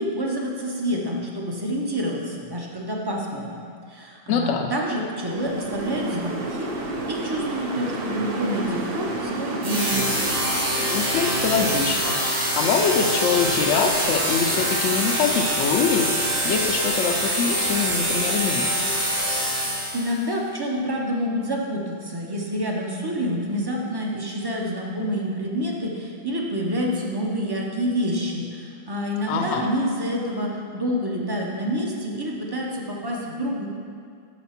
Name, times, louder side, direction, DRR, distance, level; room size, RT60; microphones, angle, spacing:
voice 1, 0.0-3.6 3.9-6.7 7.1-10.0 19.9-33.7, equal, 25° right, -1 dB, 0.6 m, -27 dB
voice 2, 4.3-4.7 10.9-18.9 29.3-29.7, left 6 dB, 70° left, 2 dB, 0.9 m, -24 dB
sound 1, 5.2-18.4, right 2 dB, 55° right, 0.9 m, -33 dB
sound 2, 9.6-20.2, right 1 dB, 90° right, 1.8 m, -24 dB
6.3 x 5.1 x 5.7 m, 2.3 s
omnidirectional pair, 1.4 m